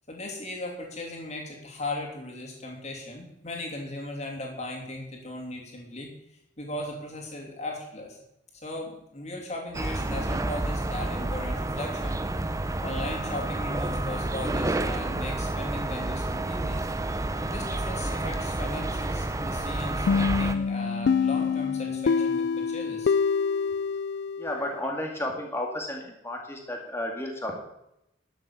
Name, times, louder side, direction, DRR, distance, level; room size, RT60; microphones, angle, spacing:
voice 1, 0.1-6.1 6.6-8.2 8.6-12.2 12.8-16.8 17.4-23.1, left 1 dB, 35° left, 0 dB, 3.0 m, -37 dB
sound 1, 9.7-20.5, right 2 dB, 15° right, 0.6 m, -30 dB
sound 2, 20.1-24.8, left 5 dB, 60° left, 0.3 m, -26 dB
voice 2, 24.4-27.6, left 1 dB, 15° left, 1 dB, 2.0 m, -32 dB
11.5 x 7.4 x 6.9 m, 0.82 s
head